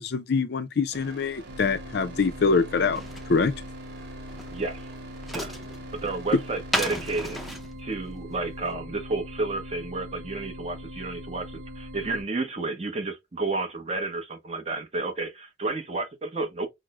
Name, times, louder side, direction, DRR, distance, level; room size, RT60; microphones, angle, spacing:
voice 1, 0.0-3.0 3.3-3.5, left 4 dB, 60° left, 0.4 m, -24 dB
sound 1, 0.9-7.5, right 3 dB, 55° right, 1.5 m, -47 dB
sound 2, 1.5-12.2, equal, 75° right, 0.8 m, -41 dB
sound 3, 2.9-8.7, equal, ahead, 0.5 m, -35 dB
voice 2, 4.5-4.9 5.3-5.5 5.9-7.4 7.8-16.7, right 3 dB, 35° right, 0.8 m, -31 dB
6.0 x 2.1 x 2.4 m
head